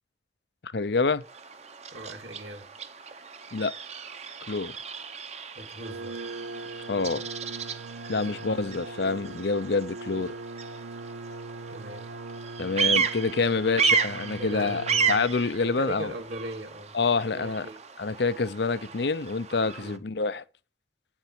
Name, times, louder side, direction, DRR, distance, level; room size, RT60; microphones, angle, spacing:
voice 1, 0.6-1.2 3.5-3.7 4.5-4.7 6.9-7.2 8.1-10.3 12.6-16.1 16.9-17.7 18.0-20.4, left 4 dB, 65° left, 0.7 m, -27 dB
Bird vocalization bird call bird song, 1.2-20.0, right 6 dB, 35° right, 1.0 m, -33 dB
voice 2, 1.9-2.7 5.6-6.3 8.1-8.5 8.7-8.9 11.7-12.1 13.6-14.0 14.4-15.0 15.6-17.0 17.3-17.8 19.8-20.0, right 1 dB, 60° right, 2.2 m, -40 dB
sound 1, 5.8-15.3, right 3 dB, 90° right, 0.9 m, -40 dB
9.5 x 7.3 x 7.6 m
head